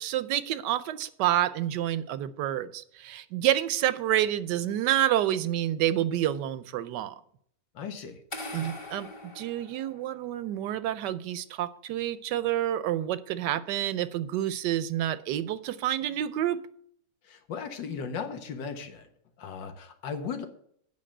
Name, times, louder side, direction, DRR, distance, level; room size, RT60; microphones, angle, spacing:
voice 1, 0.0-7.2 8.5-16.6, right 12 dB, 80° right, 14 dB, 1.2 m, -28 dB
voice 2, 7.7-8.2 17.2-19.1 19.4-20.5, left 6 dB, 90° left, 7 dB, 1.9 m, -37 dB
sound 1, 8.3-10.4, left 2 dB, 20° left, 1.6 m, -42 dB
8.5 x 5.4 x 7.8 m, 0.65 s
omnidirectional pair, 1.9 m